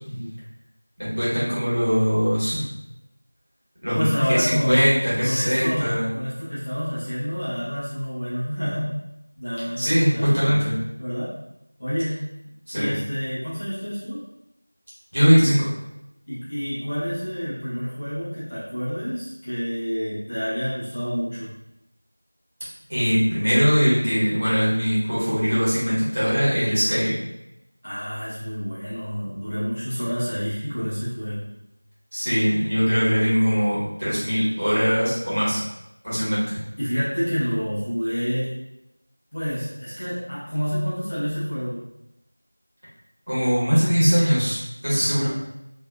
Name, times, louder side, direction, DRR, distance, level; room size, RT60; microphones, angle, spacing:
voice 1, 0.1-0.4 3.9-4.9 5.2-9.0 9.4-10.7 11.0-11.3 11.8-12.3 12.7-14.2 16.3-21.6 27.8-31.5 36.8-38.6 39.3-41.8 44.9-45.3, equal, 25° left, -12 dB, 0.8 m, -28 dB
voice 2, 1.0-2.7 3.8-4.0 4.3-6.1 9.8-10.8 12.7-12.9 15.1-15.7 22.9-27.2 32.1-35.6 36.0-36.6 43.3-44.6 44.8-45.3, equal, 50° right, -10 dB, 1.3 m, -21 dB
2.6 x 2.2 x 2.3 m, 0.88 s
figure-of-eight pair, 180°, 0 cm